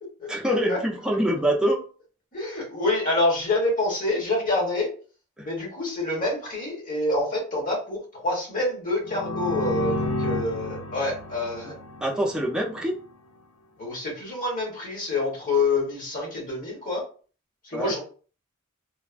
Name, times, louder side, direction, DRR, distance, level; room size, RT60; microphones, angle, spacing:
voice 1, 0.3-1.8 5.4-5.5 12.0-13.0 17.7-17.9, right 1 dB, 5° right, -2 dB, 0.5 m, -25 dB
voice 2, 2.3-4.9 5.4-11.7 13.8-17.0 17.6-18.0, left 2 dB, 40° left, -2 dB, 1.2 m, -27 dB
sound 1, 9.0-12.8, left 2 dB, 80° left, 0.5 m, -31 dB
3.2 x 2.0 x 2.4 m, 0.39 s
head